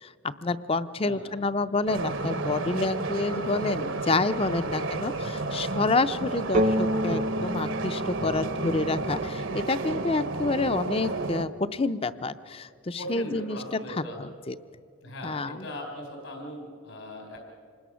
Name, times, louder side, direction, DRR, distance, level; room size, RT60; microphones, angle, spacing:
voice 1, 0.4-13.6 14.2-14.6 15.2-15.7, left 3 dB, 30° left, 13 dB, 0.5 m, -28 dB
voice 2, 1.0-1.5 3.0-3.3 13.0-14.2 15.0-17.4, equal, 80° left, 1 dB, 4.3 m, -40 dB
sound 1, 1.9-11.4, right 3 dB, 70° right, 1.1 m, -31 dB
sound 2, 6.5-10.2, equal, 40° right, 0.7 m, -30 dB
26.0 x 20.5 x 6.3 m, 2.3 s
head